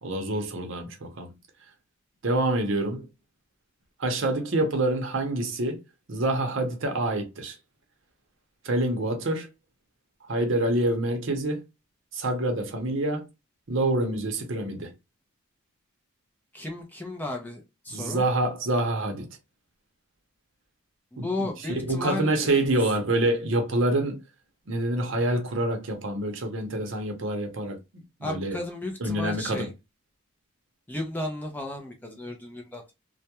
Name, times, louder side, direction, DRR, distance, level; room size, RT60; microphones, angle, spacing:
voice 1, 0.0-1.3 2.2-3.1 4.0-5.8 6.1-7.6 8.6-9.5 10.3-11.6 12.1-13.3 13.7-14.9 17.9-19.3 21.2-24.2 24.7-27.8 28.2-28.6 29.0-29.7, right 1 dB, 60° right, 0.7 m, -26 dB
voice 2, 16.5-18.2 21.1-22.8 28.2-29.7 30.9-32.9, left 2 dB, 10° left, 0.4 m, -34 dB
2.2 x 2.1 x 2.8 m
head